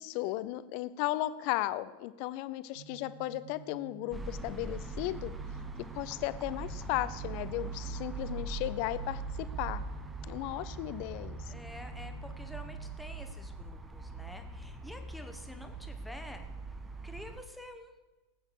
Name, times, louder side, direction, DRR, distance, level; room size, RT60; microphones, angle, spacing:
voice 1, 0.0-5.3 5.9-9.2 9.6-9.8 10.3-11.4, left 16 dB, 45° left, 15 dB, 0.6 m, -35 dB
sound 1, 2.8-12.8, right 5 dB, 65° right, 2.0 m, -51 dB
sound 2, 4.1-17.4, right 3 dB, 15° right, 1.1 m, -41 dB
voice 2, 11.5-16.5 17.0-17.9, left 1 dB, 5° left, 5 dB, 1.4 m, -48 dB
19.0 x 8.6 x 4.9 m, 1.2 s
figure-of-eight pair, 90°, 0 cm